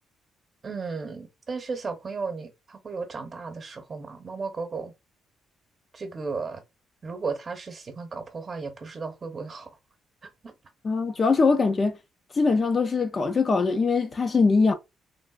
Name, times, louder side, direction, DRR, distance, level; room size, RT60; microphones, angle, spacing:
voice 1, 0.6-4.9 5.9-6.6 7.0-9.7 10.4-10.5, right 4 dB, 40° right, 0.9 m, -34 dB
voice 2, 10.8-12.0 12.4-14.7, left 4 dB, 35° left, 0.5 m, -22 dB
3.3 x 2.4 x 2.4 m
cardioid pair, 90°, 0 cm